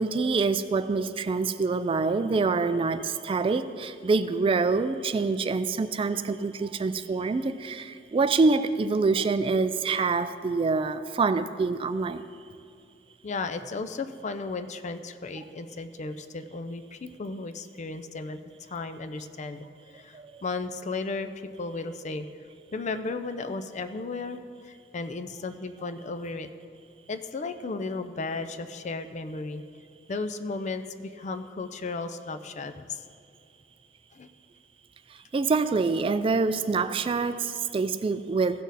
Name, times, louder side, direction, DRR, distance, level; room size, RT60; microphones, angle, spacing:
voice 1, 0.0-12.2 20.1-20.3 35.3-38.6, right 4 dB, 30° right, 12 dB, 0.3 m, -26 dB
voice 2, 13.2-22.3 22.7-26.5 27.1-29.6 30.1-33.0 34.1-34.3, left 3 dB, 40° left, 9 dB, 0.5 m, -35 dB
15.5 x 6.2 x 4.1 m, 2.5 s
head